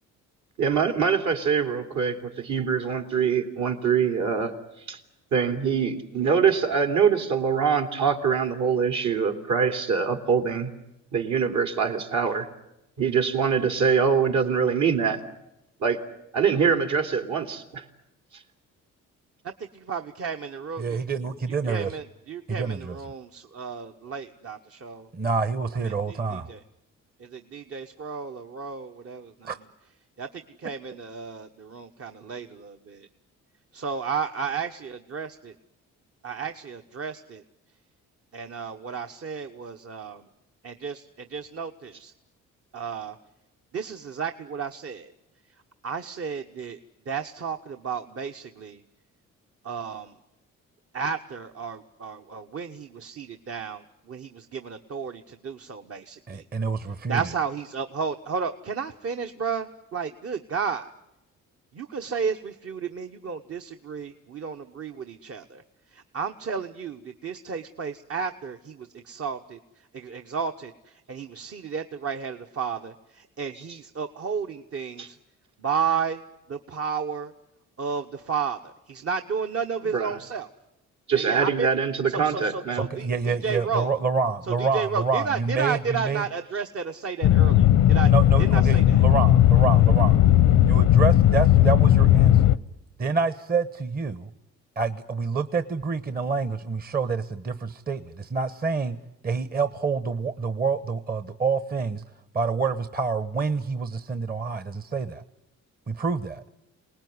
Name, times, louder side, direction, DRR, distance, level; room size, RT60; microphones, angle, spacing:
voice 1, 0.6-4.5 4.9-5.0 5.3-10.7 11.1-12.5 13.0-15.2 15.8-16.0 16.3-17.8 75.0-75.1 79.9-80.2 81.1-82.9, right 6 dB, 70° right, 5 dB, 3.0 m, -24 dB
voice 2, 19.7-21.0 21.7-25.1 25.8-26.6 27.2-29.5 30.2-33.1 33.7-35.5 36.2-37.4 38.3-40.2 40.6-42.1 42.7-43.2 43.7-45.1 45.8-46.8 47.1-48.8 49.6-50.1 50.9-56.4 57.1-60.9 61.7-65.6 65.9-69.6 69.9-75.2 75.6-76.2 76.5-77.3 77.8-80.5 81.1-81.7 82.1-83.9 84.5-88.1 88.4-89.0, right 6 dB, 50° right, 5 dB, 1.2 m, -32 dB
voice 3, 20.8-22.0 22.5-23.0 25.1-26.5 29.4-29.6 56.3-57.2 82.9-86.3 88.0-90.2 90.6-92.4 93.0-94.3 94.8-99.0 99.2-102.0 102.3-105.2 105.9-106.4, right 4 dB, 30° right, 12 dB, 1.1 m, -27 dB
sound 1, 87.2-92.6, left 12 dB, 80° left, 0.9 m, -17 dB
27.0 x 19.5 x 9.7 m, 0.89 s
cardioid pair, 90°, 30 cm